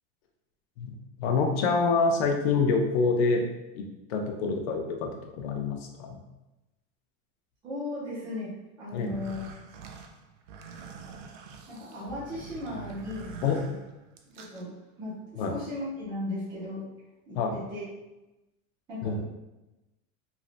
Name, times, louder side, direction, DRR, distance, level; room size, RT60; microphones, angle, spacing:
voice 1, 0.8-3.4 3.7-5.1 5.4-6.2 8.9-9.1 13.4-13.6 15.4-15.5 17.4-17.5 19.0-19.2, left 4 dB, 55° left, 3 dB, 0.5 m, -26 dB
voice 2, 7.6-9.4 11.7-13.3 14.3-16.8 17.3-17.8 18.9-19.2, left 2 dB, 10° right, -10 dB, 0.5 m, -36 dB
sound 1, 9.0-14.6, right 5 dB, 70° right, 0.5 m, -45 dB
3.1 x 2.6 x 2.4 m, 1.0 s
supercardioid pair, 180°, 38 cm